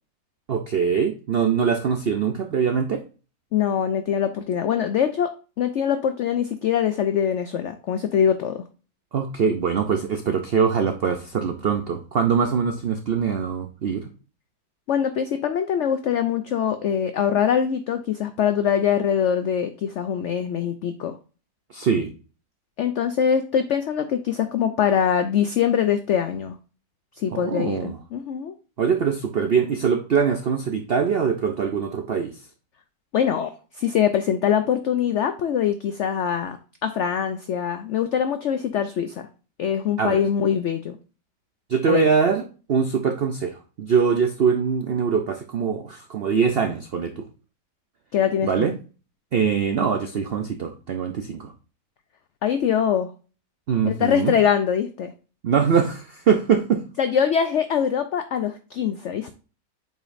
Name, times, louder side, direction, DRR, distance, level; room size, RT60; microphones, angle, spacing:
voice 1, 0.5-3.0 9.1-14.1 21.7-22.1 27.3-28.0 28.8-32.4 40.0-40.2 41.7-42.4 42.7-47.2 48.4-48.8 49.3-51.5 53.7-54.3 55.4-56.8, right 6 dB, 75° right, 6 dB, 0.5 m, -23 dB
voice 2, 3.5-5.3 5.6-8.6 14.9-21.2 22.8-26.6 27.2-28.5 33.1-36.6 36.8-39.3 39.6-41.0 41.9-42.0 48.1-48.7 52.4-53.1 53.8-55.1 57.0-59.3, left 8 dB, 90° left, 9 dB, 0.6 m, -23 dB
7.7 x 5.0 x 2.6 m, 0.36 s
omnidirectional pair, 1.8 m